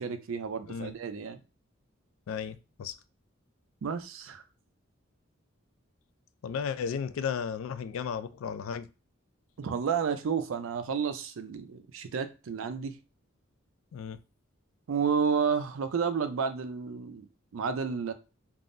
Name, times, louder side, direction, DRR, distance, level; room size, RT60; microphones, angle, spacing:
voice 1, 0.0-1.4 3.8-4.4 9.6-13.0 14.9-17.3 17.5-18.1, right 6 dB, 75° right, 0.4 m, -31 dB
voice 2, 2.3-2.9 6.4-8.9 13.9-14.2, left 7 dB, 80° left, 0.3 m, -34 dB
3.5 x 2.0 x 2.5 m
head